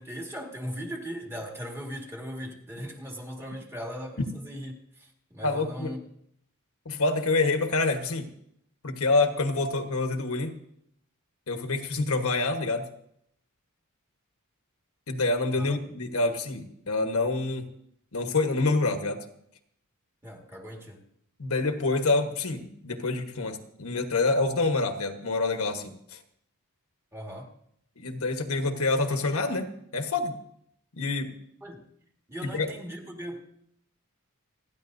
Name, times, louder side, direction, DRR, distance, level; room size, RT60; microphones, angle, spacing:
voice 1, 0.0-6.0 15.5-15.8 20.2-21.0 27.1-27.5 31.6-31.9 32.3-33.4, equal, 10° right, 2 dB, 1.8 m, -38 dB
voice 2, 5.4-5.9 6.8-8.3 8.8-10.5 11.5-12.8 15.1-17.7 18.1-19.2 21.4-26.2 28.0-30.3 31.0-31.4 32.4-32.7, left 3 dB, 70° left, 6 dB, 1.3 m, -27 dB
28.5 x 10.5 x 2.7 m, 0.71 s
head